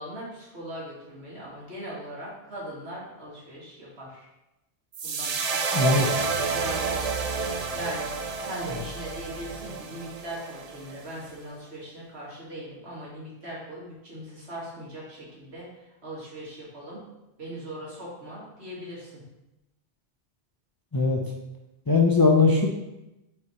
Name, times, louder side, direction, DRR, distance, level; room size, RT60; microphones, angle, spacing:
voice 1, 0.0-4.3 5.0-5.9 6.5-7.1 7.7-8.1 8.4-15.7 16.0-17.0 17.4-19.2, right 1 dB, 70° right, -6 dB, 2.2 m, -39 dB
sound 1, 4.9-11.3, right 4 dB, 45° right, 0.5 m, -30 dB
voice 2, 5.7-6.2 20.9-21.2 21.9-22.7, left 4 dB, 30° left, 0 dB, 0.4 m, -20 dB
4.9 x 4.7 x 4.2 m, 0.96 s
omnidirectional pair, 1.1 m